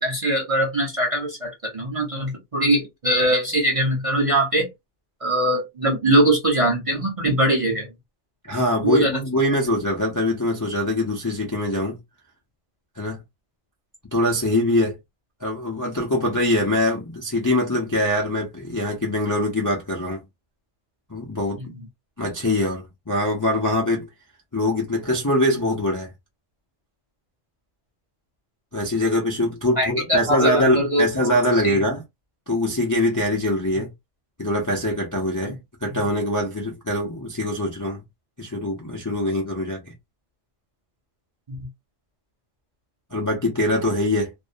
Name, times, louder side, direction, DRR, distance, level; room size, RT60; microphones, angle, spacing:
voice 1, 0.0-4.7 5.2-7.9 8.8-9.2 21.6-21.7 29.8-31.4 31.6-31.8 33.7-33.8 35.4-35.5 35.9-36.0 41.5-41.7, right 1 dB, 35° right, 0.6 m, -22 dB
voice 2, 8.4-12.0 13.0-13.2 14.1-15.0 15.4-20.2 21.1-21.6 22.2-24.1 24.5-26.1 28.7-32.0 32.5-33.9 34.4-38.0 38.4-39.8 43.1-44.3, left 1 dB, 25° left, 0.4 m, -23 dB
2.5 x 2.1 x 2.6 m
omnidirectional pair, 1.3 m